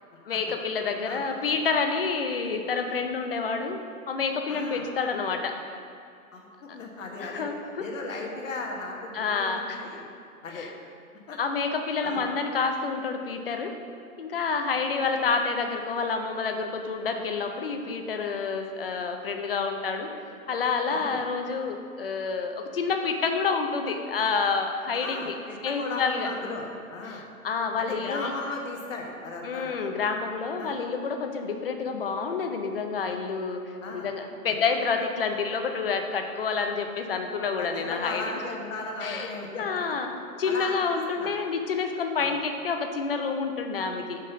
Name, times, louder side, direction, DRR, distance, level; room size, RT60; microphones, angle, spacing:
voice 1, 0.3-3.8 4.1-5.5 7.2-8.2 9.1-9.8 10.5-10.7 11.3-13.7 14.2-20.1 20.5-25.4 25.6-26.3 27.1-28.3 29.4-38.2 39.0-39.3 39.6-40.1 40.4-44.2, left 5 dB, 40° left, 5 dB, 0.6 m, -28 dB
voice 2, 4.5-4.8 6.3-7.5 7.8-10.0 10.4-10.7 11.3-11.4 12.0-12.2 20.9-21.2 24.9-27.2 27.8-29.8 30.6-30.7 33.8-34.1 37.6-39.8 40.4-41.3 42.2-42.4, left 3 dB, 60° left, 0 dB, 1.3 m, -36 dB
5.5 x 5.3 x 5.4 m, 2.4 s
hypercardioid pair, 170°, 44 cm